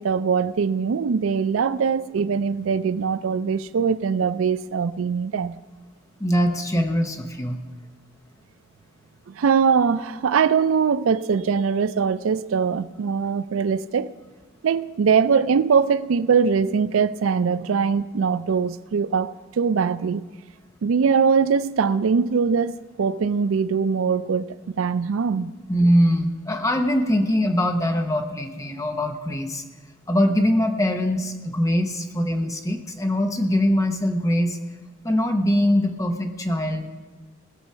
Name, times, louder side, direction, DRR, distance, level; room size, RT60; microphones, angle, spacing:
voice 1, 0.0-5.6 9.3-14.1 14.6-19.3 19.6-20.2 20.8-24.5 24.8-25.5, right 6 dB, 85° right, 0.4 m, -22 dB
voice 2, 6.2-7.6 25.7-29.6 30.1-34.6 35.0-36.9, equal, 15° left, 0.9 m, -22 dB
19.5 x 7.0 x 5.6 m
head